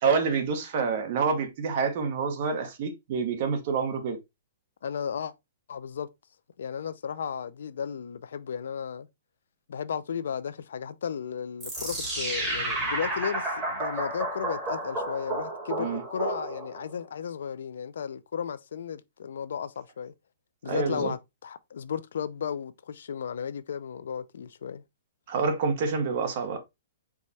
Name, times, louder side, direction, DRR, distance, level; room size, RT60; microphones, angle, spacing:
voice 1, 0.0-4.2 15.8-16.0 20.7-21.1 25.3-26.6, right 5 dB, 40° right, 0.9 m, -27 dB
voice 2, 4.8-5.3 5.7-6.1 6.6-9.1 9.7-20.1 20.6-24.8, left 7 dB, 75° left, 0.4 m, -34 dB
sound 1, 11.6-16.9, right 2 dB, 10° right, 1.2 m, -31 dB
sound 2, 11.7-14.1, left 6 dB, 45° left, 0.8 m, -47 dB
4.7 x 2.2 x 4.0 m
hypercardioid pair, 170°, 0 cm